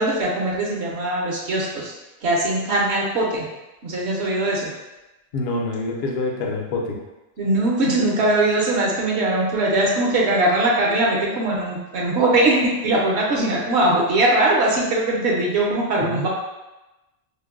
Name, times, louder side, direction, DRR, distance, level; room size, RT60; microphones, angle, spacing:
voice 1, 0.0-1.9 2.2-3.4 3.8-4.7 7.4-16.3, right 2 dB, 65° right, -3 dB, 0.8 m, -21 dB
voice 2, 5.3-7.0 16.0-16.3, left 2 dB, 60° left, 0 dB, 0.8 m, -26 dB
5.0 x 2.0 x 2.3 m, 1.0 s
omnidirectional pair, 1.3 m